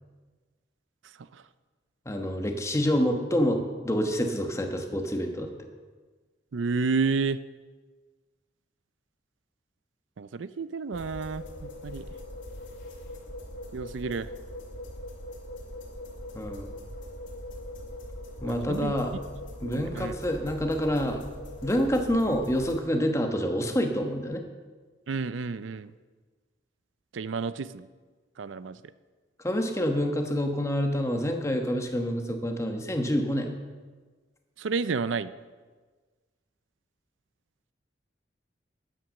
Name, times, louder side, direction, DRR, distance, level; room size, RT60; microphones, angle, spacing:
voice 1, 2.0-5.5 16.3-16.7 18.4-19.1 19.6-21.2 21.6-24.4 29.4-33.5, equal, 15° left, 4 dB, 1.2 m, -27 dB
voice 2, 6.5-7.4 10.2-12.1 13.7-14.3 18.5-18.9 19.6-20.1 25.1-25.9 27.1-27.9 28.4-28.8 34.6-35.3, right 4 dB, 85° right, 15 dB, 0.5 m, -31 dB
sound 1, 10.9-22.8, left 1 dB, 75° left, 2.6 m, -41 dB
13.0 x 9.2 x 6.4 m, 1.4 s
head